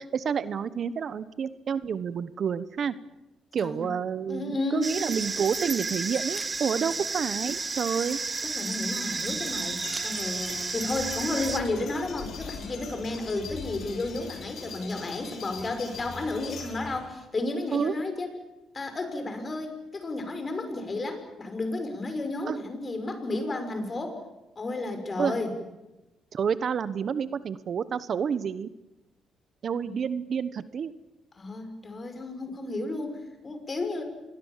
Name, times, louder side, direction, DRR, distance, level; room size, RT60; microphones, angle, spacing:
voice 1, 0.0-3.0 3.5-8.2 17.7-17.9 22.5-22.6 25.2-25.3 26.3-28.7 29.6-30.9, right 7 dB, 55° right, 15 dB, 1.1 m, -29 dB
voice 2, 4.3-5.1 6.8-6.9 8.4-18.3 18.7-24.2 24.6-25.5 29.8-29.9 31.4-34.0, left 2 dB, 35° left, 7 dB, 6.0 m, -32 dB
sound 1, 4.8-11.6, right 4 dB, 30° right, 1.6 m, -32 dB
sound 2, 9.3-17.1, left 4 dB, 65° left, 7.3 m, -41 dB
27.5 x 21.5 x 7.4 m, 0.99 s
cardioid pair, 90°, 0 cm